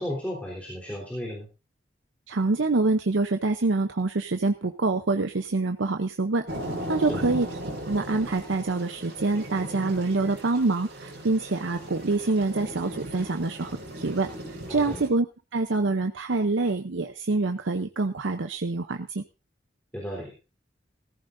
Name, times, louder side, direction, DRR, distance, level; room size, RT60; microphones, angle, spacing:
voice 1, 0.0-1.5 7.1-7.2 14.7-15.0 19.9-20.4, equal, 10° left, -3 dB, 3.7 m, -34 dB
voice 2, 2.3-6.5 6.9-7.5 7.9-15.3 15.5-19.2, right 3 dB, 85° right, 6 dB, 0.8 m, -26 dB
sound 1, 6.5-15.1, right 1 dB, 60° right, 5.2 m, -37 dB
18.5 x 15.0 x 2.7 m, 0.31 s
head